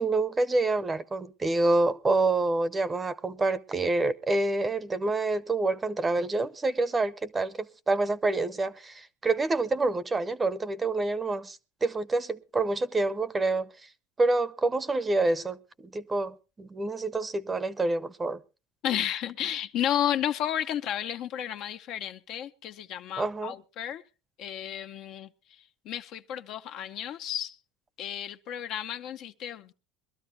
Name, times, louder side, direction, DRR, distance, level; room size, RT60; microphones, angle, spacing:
voice 1, 0.0-13.7 14.2-18.4 23.2-23.5, right 2 dB, 15° right, 0.7 m, -27 dB
voice 2, 18.8-24.0 24.4-27.6 28.0-29.7, left 10 dB, 55° left, 0.7 m, -32 dB
22.5 x 12.5 x 2.7 m
supercardioid pair, 125°, 0 cm